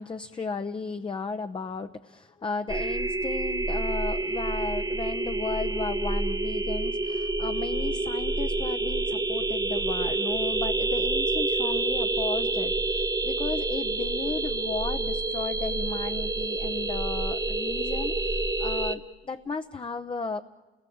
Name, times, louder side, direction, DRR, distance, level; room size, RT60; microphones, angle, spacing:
voice 1, 0.0-20.4, left 4 dB, 25° left, 7 dB, 0.8 m, -35 dB
sound 1, 2.7-19.0, right 2 dB, 20° right, 1.3 m, -28 dB
28.5 x 19.0 x 8.6 m, 1.3 s
cardioid pair, 90°, 20 cm